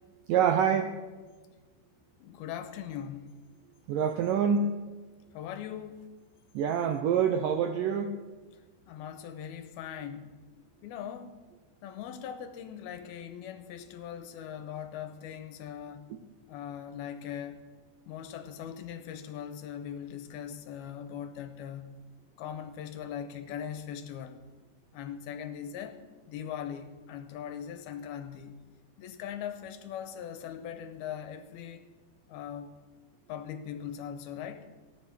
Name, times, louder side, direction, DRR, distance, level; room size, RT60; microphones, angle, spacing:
voice 1, 0.3-0.9 3.9-4.8 6.6-8.2, right 7 dB, 80° right, 6 dB, 1.9 m, -26 dB
voice 2, 2.2-3.3 5.3-6.1 8.9-10.4 10.8-11.4 11.8-16.1 16.5-17.6 18.1-22.0 22.4-24.4 24.9-26.0 26.3-28.6 29.0-31.9 32.3-32.8 33.3-34.7, left 9 dB, 80° left, 9 dB, 2.6 m, -40 dB
16.5 x 10.5 x 5.9 m, 1.3 s
omnidirectional pair, 4.7 m